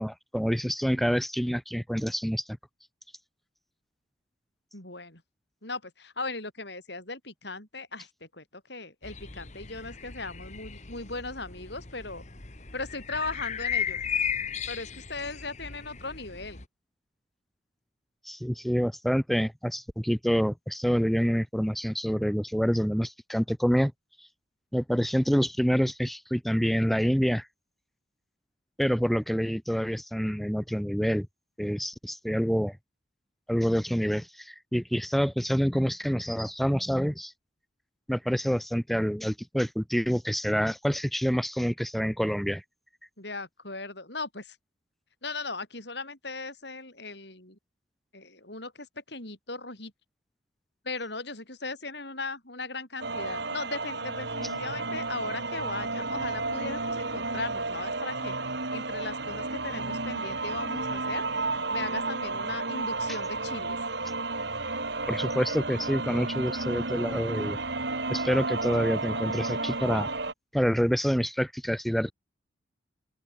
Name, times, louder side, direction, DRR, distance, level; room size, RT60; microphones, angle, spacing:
voice 1, 0.0-2.4 18.2-23.9 24.2-24.3 24.7-27.5 28.8-31.3 31.6-32.8 33.5-37.3 38.1-42.6 65.1-67.6 68.1-70.1 70.5-72.1, equal, ahead, 0.5 m, -27 dB
voice 2, 4.7-5.2 5.6-12.2 12.7-14.0 14.7-16.6 43.2-44.6 45.2-47.6 48.1-49.9 50.8-61.3 61.7-63.8, left 3 dB, 60° left, 6.6 m, -38 dB
sound 1, 9.0-16.6, left 7 dB, 35° left, 1.7 m, -35 dB
sound 2, 53.0-70.3, right 3 dB, 60° right, 2.8 m, -32 dB
open air
head